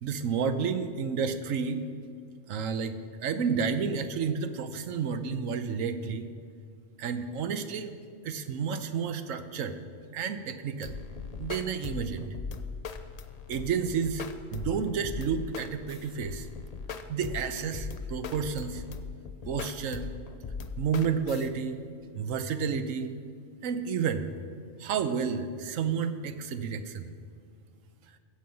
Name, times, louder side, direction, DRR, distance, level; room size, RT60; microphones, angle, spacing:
voice 1, 0.0-1.8 2.5-6.3 7.0-7.9 8.2-9.8 10.1-11.0 11.4-12.3 13.5-16.5 17.1-18.8 19.4-20.1 20.8-21.8 22.1-23.1 23.6-24.3 24.8-27.1, right 6 dB, 90° right, 9 dB, 1.1 m, -31 dB
sound 1, 10.8-21.5, left 5 dB, 50° left, 0.5 m, -39 dB
15.0 x 7.7 x 5.4 m, 2.2 s
omnidirectional pair, 1.3 m